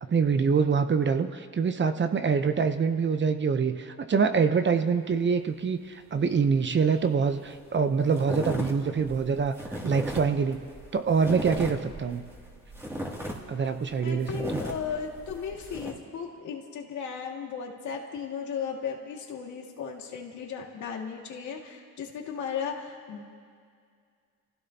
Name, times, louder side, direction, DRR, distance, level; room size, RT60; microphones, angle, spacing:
voice 1, 0.1-9.5 9.8-10.6 10.9-12.2 13.5-14.6, right 5 dB, 40° right, 9 dB, 0.9 m, -25 dB
sound 1, 7.1-7.2 7.4-7.7 8.1-15.9, equal, 10° right, 2.7 m, -36 dB
voice 2, 14.0-23.2, left 6 dB, 75° left, 0 dB, 2.3 m, -36 dB
29.5 x 16.0 x 2.9 m, 2.1 s
cardioid pair, 90°, 30 cm